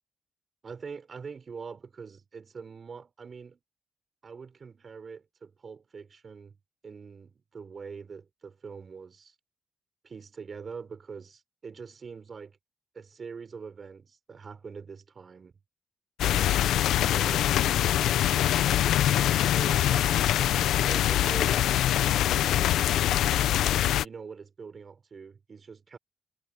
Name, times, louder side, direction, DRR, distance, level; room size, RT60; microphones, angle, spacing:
voice 1, 0.6-3.6 4.2-6.6 6.8-9.3 10.0-12.6 12.9-15.5 16.2-16.6 16.9-18.5 19.4-23.2 24.0-26.0, right 5 dB, 55° right, 5.0 m, -44 dB
sound 1, 16.2-24.0, left 12 dB, 80° left, 0.7 m, -24 dB
supercardioid pair, 50°, 0 cm